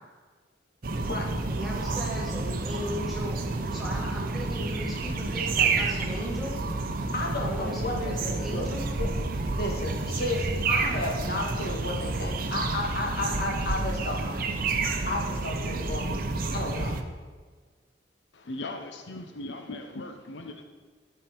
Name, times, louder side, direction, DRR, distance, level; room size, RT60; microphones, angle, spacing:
sound 1, 0.8-17.0, right 3 dB, 55° right, 0.7 m, -29 dB
voice 1, 1.5-6.6 7.4-8.8, equal, ahead, -5 dB, 2.2 m, -38 dB
voice 2, 7.1-8.7 9.0-14.4 15.0-17.0, left 2 dB, 60° left, 0 dB, 1.7 m, -33 dB
voice 3, 18.3-20.6, left 2 dB, 90° left, 6 dB, 0.8 m, -38 dB
12.0 x 5.8 x 4.5 m, 1.5 s
head